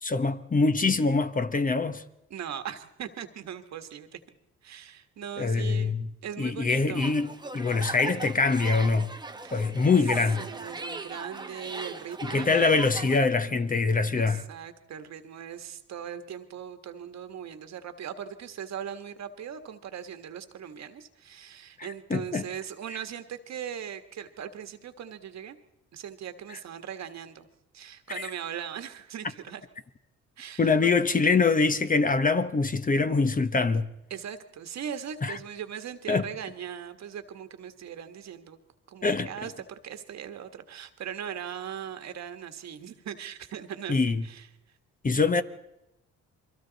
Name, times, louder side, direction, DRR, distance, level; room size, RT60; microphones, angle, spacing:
voice 1, 0.0-2.0 5.4-6.1 6.4-9.1 9.5-10.5 12.3-14.4 22.1-22.4 28.1-28.2 30.6-33.9 35.2-35.3 36.1-36.2 39.0-39.3 43.9-44.2 45.0-45.4, left 4 dB, 25° left, 1.0 m, -24 dB
voice 2, 2.3-4.2 4.6-6.0 6.2-7.1 9.4-9.7 10.4-12.8 14.2-25.6 25.9-27.5 27.7-29.6 30.4-30.9 34.1-38.6 38.9-44.5 45.1-45.4, right 8 dB, 60° right, 1.5 m, -39 dB
sound 1, 6.9-13.2, right 3 dB, 15° right, 1.1 m, -38 dB
29.5 x 23.0 x 4.1 m
cardioid pair, 90°, 30 cm